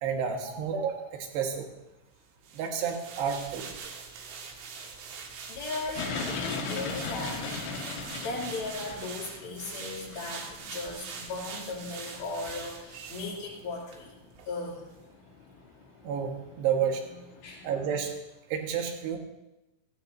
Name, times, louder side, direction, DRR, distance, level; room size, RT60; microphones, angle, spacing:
voice 1, 0.0-1.7 2.5-3.7 12.9-13.1 16.0-16.3 16.6-17.0 17.6-18.1 18.5-19.2, right 7 dB, 65° right, 2 dB, 3.2 m, -30 dB
sound 1, 2.4-14.0 14.4-14.5, right 5 dB, 85° right, 4.2 m, -43 dB
voice 2, 5.5-14.2 14.4-14.8 17.4-17.7, left 3 dB, 45° left, -3 dB, 3.9 m, -37 dB
sound 2, 5.9-18.2, left 4 dB, 75° left, 3.8 m, -40 dB
17.5 x 16.0 x 2.7 m, 0.97 s
omnidirectional pair, 5.6 m